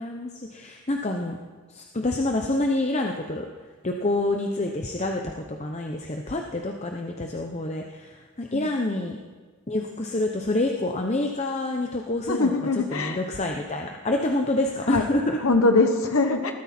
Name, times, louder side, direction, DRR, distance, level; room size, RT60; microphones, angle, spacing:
voice 1, 0.0-1.4 1.7-3.5 3.8-9.2 9.7-12.5 12.9-15.4, left 2 dB, 30° left, 3 dB, 0.8 m, -27 dB
voice 2, 12.3-13.2 14.9-15.1 15.4-16.5, left 3 dB, 70° left, 5 dB, 1.1 m, -22 dB
20.0 x 13.5 x 4.4 m, 1.4 s
head